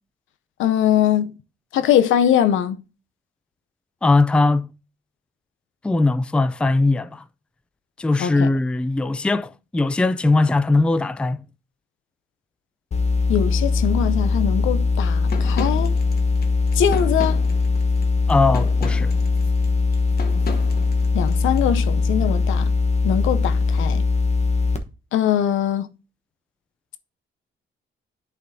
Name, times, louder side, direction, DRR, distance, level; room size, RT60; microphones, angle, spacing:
voice 1, 0.6-1.3 1.7-2.8 8.2-8.6 13.3-15.9 16.7-17.4 21.1-22.7 23.0-24.0 25.1-25.9, left 10 dB, 80° left, 0.7 m, -21 dB
voice 2, 4.0-4.7 5.8-7.2 8.0-11.4 18.3-19.1, left 3 dB, 5° left, 0.3 m, -20 dB
sound 1, 12.9-24.8, left 4 dB, 35° left, 1.1 m, -21 dB
sound 2, 15.3-21.6, left 3 dB, 50° left, 1.4 m, -35 dB
10.5 x 4.3 x 2.7 m
cardioid pair, 90°, 20 cm